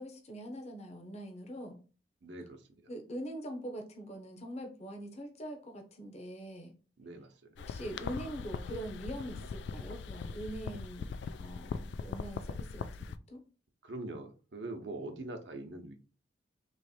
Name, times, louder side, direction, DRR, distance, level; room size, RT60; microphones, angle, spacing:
voice 1, 0.0-1.8 2.9-6.7 7.6-11.1 11.4-13.4, right 1 dB, 40° left, 0.9 m, -43 dB
voice 2, 2.2-2.9 7.0-7.3 13.8-15.9, right 2 dB, 75° right, 0.8 m, -43 dB
sound 1, 7.6-13.2, left 5 dB, 70° left, 0.3 m, -41 dB
3.2 x 3.1 x 4.2 m
head